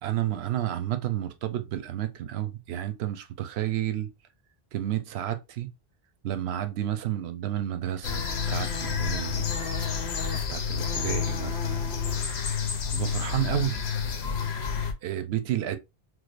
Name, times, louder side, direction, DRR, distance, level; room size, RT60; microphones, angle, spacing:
voice 1, 0.0-4.1 4.7-5.7 6.2-8.2 8.5-9.4 10.5-12.0 12.9-13.8 15.0-15.8, right 12 dB, 85° right, 0.8 m, -31 dB
sound 1, 8.0-14.9, left 6 dB, 90° left, 1.0 m, -29 dB
4.7 x 2.0 x 2.4 m
omnidirectional pair, 1.1 m